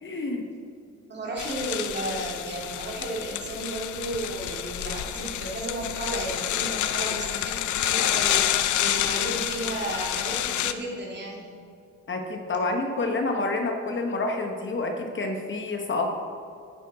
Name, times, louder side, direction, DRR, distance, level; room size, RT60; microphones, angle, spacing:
voice 1, 0.0-0.4 12.1-16.1, left 3 dB, 40° left, 3 dB, 1.1 m, -28 dB
voice 2, 0.9-11.5, right 1 dB, 35° right, -2 dB, 2.7 m, -33 dB
sound 1, 1.4-10.7, left 12 dB, 75° left, 0.6 m, -28 dB
10.0 x 9.2 x 4.3 m, 2.5 s
cardioid pair, 90°, 30 cm